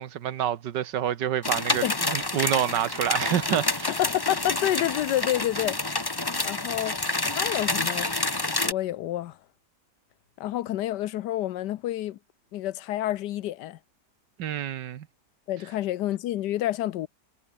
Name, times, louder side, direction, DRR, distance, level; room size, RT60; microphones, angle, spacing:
voice 1, 0.0-3.9 14.4-15.1, right 10 dB, 85° right, 1.7 m, -28 dB
sound 1, 1.4-8.7, left 2 dB, 15° left, 1.2 m, -28 dB
voice 2, 3.9-8.1 8.6-9.4 10.4-12.2 12.5-13.8 15.5-17.1, left 13 dB, 80° left, 1.3 m, -29 dB
omnidirectional pair, 1.8 m